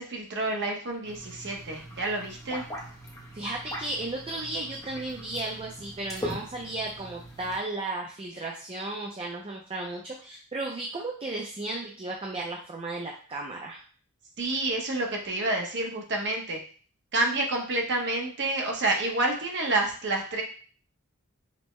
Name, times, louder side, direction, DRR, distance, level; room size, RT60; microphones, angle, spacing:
voice 1, 0.0-2.6 14.4-16.6 17.1-20.4, right 2 dB, 55° right, 1 dB, 0.8 m, -28 dB
sound 1, 1.0-7.6, equal, 15° left, 0.8 m, -41 dB
voice 2, 3.3-13.8, right 2 dB, 25° right, -1 dB, 0.4 m, -34 dB
5.2 x 2.1 x 3.1 m, 0.43 s
head